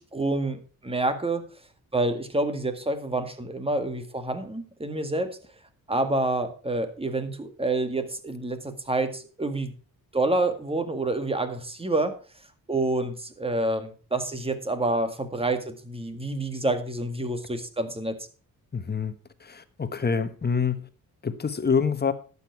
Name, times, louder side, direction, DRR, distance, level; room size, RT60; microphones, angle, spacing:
voice 1, 0.0-1.4 1.9-5.4 5.9-9.7 10.1-12.2 12.7-18.2, right 2 dB, 15° right, 1.9 m, -28 dB
voice 2, 18.7-19.1 19.4-20.9 21.2-22.1, left 5 dB, 30° left, 1.3 m, -26 dB
11.5 x 8.5 x 4.7 m
cardioid pair, 90°, 35 cm